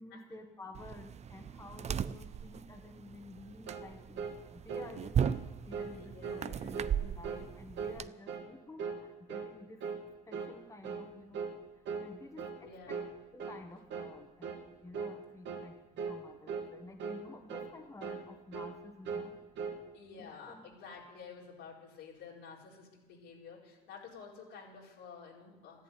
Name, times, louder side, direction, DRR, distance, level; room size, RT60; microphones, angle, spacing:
voice 1, 0.0-5.2 5.7-9.8 10.3-11.4 12.0-13.0 13.3-15.7 16.1-19.3 20.2-20.6, left 2 dB, 15° left, 3 dB, 1.5 m, -51 dB
sound 1, 0.7-8.1, right 8 dB, 35° right, 0.5 m, -37 dB
sound 2, 3.7-3.9 4.2-4.4 4.7-4.9 5.2-5.4 5.7-5.9 6.2-6.4 6.7-7.0 7.2-7.5 7.8-8.0 8.3-8.5 8.8-9.0 9.3-9.5 9.8-10.0 10.3-10.6 10.8-11.1 11.3-11.6 11.9-12.1 12.4-12.6 12.9-13.1 13.4-13.6 13.9-14.1 14.4-14.7 14.9-15.2 15.5-15.7 16.0-16.2 16.5-16.7 17.0-17.2 17.5-17.7 18.0-18.3 18.5-18.8 19.1-19.8, right 5 dB, 75° right, 2.5 m, -39 dB
voice 2, 5.9-6.8 12.6-13.1 19.9-25.8, left 5 dB, 85° left, -3 dB, 4.4 m, -51 dB
13.5 x 11.5 x 9.2 m, 1.1 s
cardioid pair, 110°, 19 cm